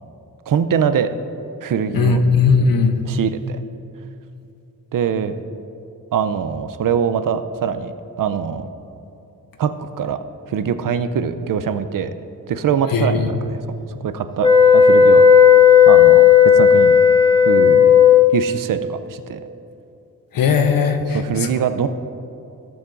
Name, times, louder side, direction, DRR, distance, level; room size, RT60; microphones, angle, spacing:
voice 1, 0.5-1.1 1.6-2.2 3.1-3.6 4.9-5.3 6.1-8.7 9.6-10.2 10.5-12.2 12.5-13.6 14.0-16.3 16.5-17.0 17.5-18.0 18.3-19.4 21.1-21.9, right 7 dB, 65° right, 11 dB, 0.6 m, -23 dB
voice 2, 1.9-2.9 12.9-13.3 20.3-21.5, left 5 dB, 70° left, 7 dB, 0.9 m, -17 dB
sound 1, 14.4-18.3, left 7 dB, 15° left, 0.7 m, -11 dB
17.0 x 7.2 x 2.6 m, 2.7 s
cardioid pair, 75°, 35 cm